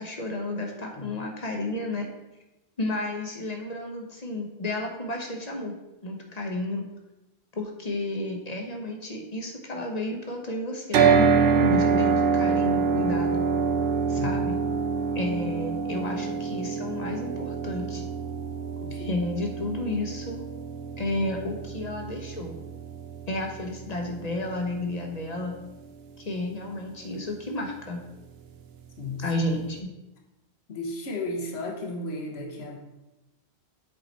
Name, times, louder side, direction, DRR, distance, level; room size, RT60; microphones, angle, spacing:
voice 1, 0.0-2.1 2.8-5.7 6.0-6.9 7.5-13.5 14.1-14.6 15.1-18.0 18.9-20.4 21.0-22.5 23.3-25.6 26.2-28.0 29.2-29.9, left 2 dB, 40° left, 2 dB, 1.0 m, -32 dB
sound 1, 10.9-25.1, right 5 dB, 70° right, 0.8 m, -26 dB
voice 2, 30.7-32.8, left 2 dB, 70° left, 1 dB, 1.3 m, -34 dB
7.9 x 4.8 x 4.0 m, 0.99 s
omnidirectional pair, 1.1 m